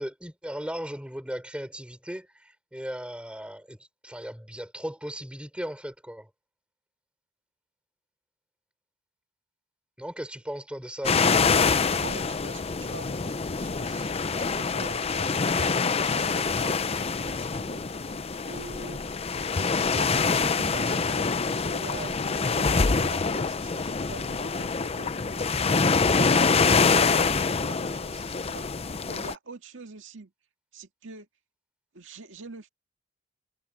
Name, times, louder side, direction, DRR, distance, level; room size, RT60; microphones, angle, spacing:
voice 1, 0.0-3.8 4.0-6.3 10.0-11.2, equal, 5° right, 3.9 m, -37 dB
sound 1, 11.0-29.3, left 4 dB, 30° left, 0.6 m, -25 dB
voice 2, 11.9-17.8 18.4-19.2 19.9-25.5 26.0-26.5 26.8-30.3 30.7-31.3 31.9-32.7, right 2 dB, 80° right, 2.0 m, -44 dB
head